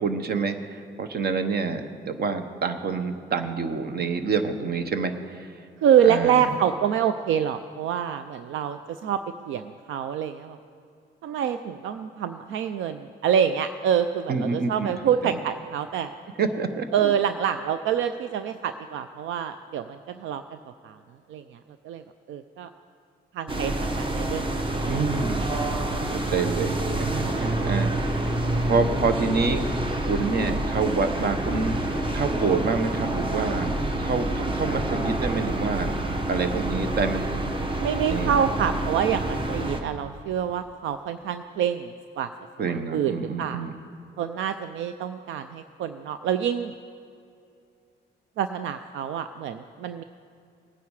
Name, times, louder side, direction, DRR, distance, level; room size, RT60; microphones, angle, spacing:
voice 1, 0.0-5.5 6.0-6.4 14.3-15.0 15.2-15.4 16.4-17.1 24.9-25.6 25.9-28.3 28.7-29.7 30.0-33.7 34.0-35.9 36.3-37.3 38.1-38.4 42.6-43.7, right 4 dB, 50° right, 9 dB, 1.0 m, -27 dB
voice 2, 5.8-9.2 9.5-10.6 11.2-16.1 16.9-20.4 20.8-21.0 21.3-21.6 21.8-22.0 22.3-22.7 23.3-24.9 37.8-42.3 42.7-43.6 44.2-46.7 48.4-50.0, right 8 dB, 75° right, 10 dB, 0.5 m, -26 dB
sound 1, 23.5-39.8, right 1 dB, 25° right, 1.1 m, -27 dB
18.5 x 9.4 x 4.8 m, 2.5 s
cardioid pair, 90°, 20 cm